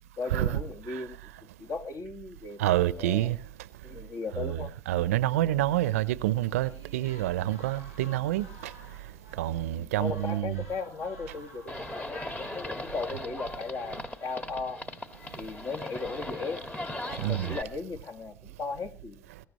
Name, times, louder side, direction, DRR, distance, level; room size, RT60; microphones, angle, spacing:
voice 1, 0.2-3.3 3.8-4.7 9.7-14.8 15.4-16.6 17.2-19.3, left 4 dB, 45° left, 2.0 m, -37 dB
voice 2, 2.6-3.4 4.4-4.6 4.9-8.7 9.4-10.6 17.1-17.6, right 14 dB, 80° right, 0.7 m, -27 dB
sound 1, 5.1-9.7 10.1-12.0, left 1 dB, 90° left, 5.2 m, -53 dB
Livestock farm animals working animals, 11.7-17.6, left 1 dB, 20° left, 1.8 m, -39 dB
23.5 x 14.0 x 3.0 m
hypercardioid pair, 70°, 8 cm